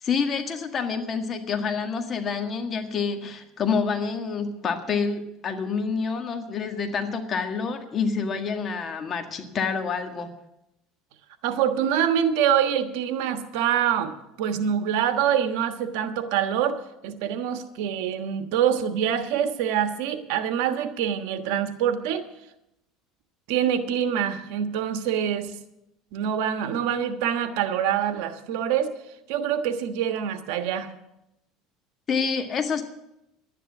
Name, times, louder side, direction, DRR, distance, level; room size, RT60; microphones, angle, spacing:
voice 1, 0.0-10.3 32.1-32.8, left 5 dB, 35° left, 5 dB, 1.8 m, -27 dB
voice 2, 11.4-14.1 14.4-16.8 17.0-22.3 23.5-25.5 26.1-28.9 29.3-30.9, right 9 dB, 75° right, 8 dB, 1.3 m, -25 dB
11.5 x 9.9 x 7.2 m, 0.87 s
supercardioid pair, 115°, 0 cm